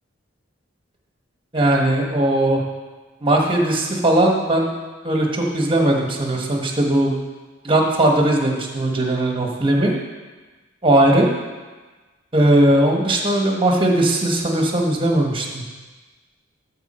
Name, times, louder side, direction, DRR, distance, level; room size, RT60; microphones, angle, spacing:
voice 1, 1.5-2.6 3.2-4.7 5.0-7.2 7.6-10.0 10.8-11.3 12.3-15.6, right 1 dB, 25° right, 1 dB, 1.3 m, -18 dB
13.0 x 4.6 x 4.3 m, 1.3 s
head